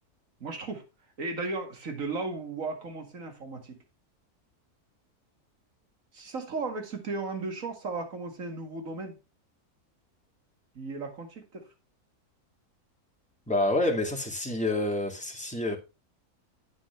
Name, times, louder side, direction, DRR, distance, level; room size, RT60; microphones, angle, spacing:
voice 1, 0.4-0.8 1.2-3.8 6.1-9.2 10.7-11.7, right 3 dB, 60° right, 2.3 m, -35 dB
voice 2, 13.5-15.8, left 1 dB, 5° left, 2.2 m, -28 dB
9.8 x 8.6 x 3.2 m
omnidirectional pair, 1.6 m